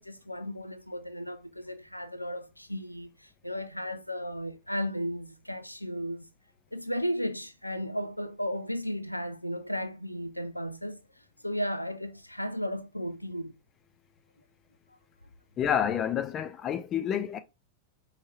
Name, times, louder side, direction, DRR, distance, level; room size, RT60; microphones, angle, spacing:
voice 1, 0.0-6.3 6.7-13.6 14.9-15.0, equal, 90° left, 0.3 m, -35 dB
voice 2, 15.6-17.4, left 9 dB, 30° left, 0.5 m, -29 dB
4.5 x 3.2 x 2.3 m
figure-of-eight pair, 90°, 0 cm